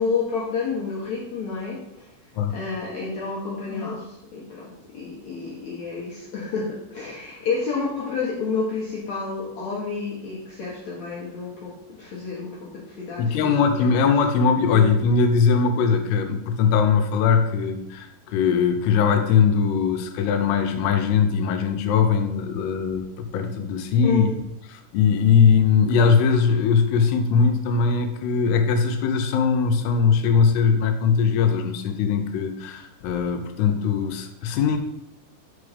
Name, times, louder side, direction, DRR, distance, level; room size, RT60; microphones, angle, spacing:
voice 1, 0.0-1.8 2.5-13.5 13.8-13.9 14.7-14.8 24.0-24.3, left 4 dB, 70° left, -6 dB, 1.7 m, -29 dB
voice 2, 13.2-24.3 24.9-34.8, left 6 dB, 85° left, 6 dB, 2.7 m, -20 dB
5.0 x 4.9 x 4.9 m, 0.84 s
omnidirectional pair, 4.7 m